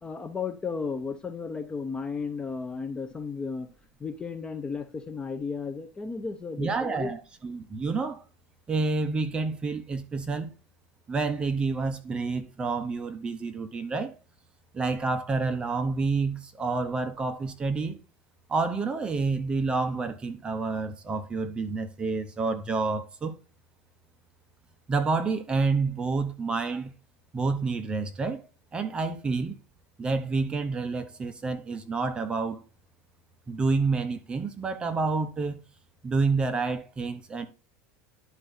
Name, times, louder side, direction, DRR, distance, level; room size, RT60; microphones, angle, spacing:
voice 1, 0.0-3.7 4.0-7.1, left 5 dB, 15° left, 0.6 m, -34 dB
voice 2, 6.6-8.2 8.7-10.5 11.1-14.2 14.7-18.0 18.5-23.4 24.9-26.9 27.3-28.4 28.7-29.6 30.0-32.6 33.5-35.6 36.0-37.5, right 4 dB, 15° right, 0.8 m, -28 dB
11.5 x 4.5 x 2.6 m
supercardioid pair, 150°, 6 cm